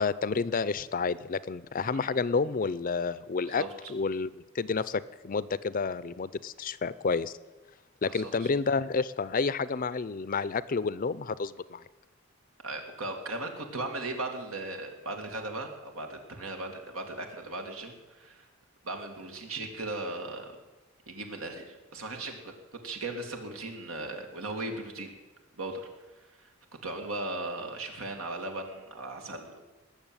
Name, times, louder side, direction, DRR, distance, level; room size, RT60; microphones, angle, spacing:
voice 1, 0.0-3.6 3.9-7.3 8.0-11.8, left 4 dB, 40° left, 17 dB, 0.5 m, -30 dB
voice 2, 8.1-8.5 12.6-18.5 18.8-20.5 21.1-25.1 25.6-25.9 26.4-26.5 26.8-29.6, right 2 dB, 90° right, 3 dB, 2.5 m, -37 dB
19.0 x 7.1 x 9.0 m, 1.1 s
head